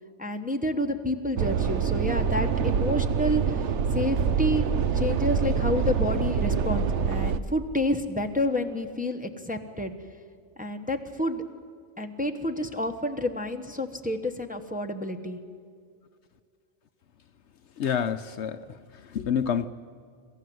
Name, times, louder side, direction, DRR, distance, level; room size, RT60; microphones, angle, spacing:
voice 1, 0.2-3.4 3.9-4.7 4.9-9.9 10.6-11.4 12.0-15.4, left 1 dB, 5° right, 4 dB, 1.0 m, -29 dB
sound 1, 1.4-7.4, right 7 dB, 65° right, 1.0 m, -25 dB
voice 2, 17.8-18.6 19.0-19.7, left 8 dB, 65° left, 11 dB, 0.9 m, -27 dB
27.0 x 14.0 x 7.8 m, 2.2 s
omnidirectional pair, 1.3 m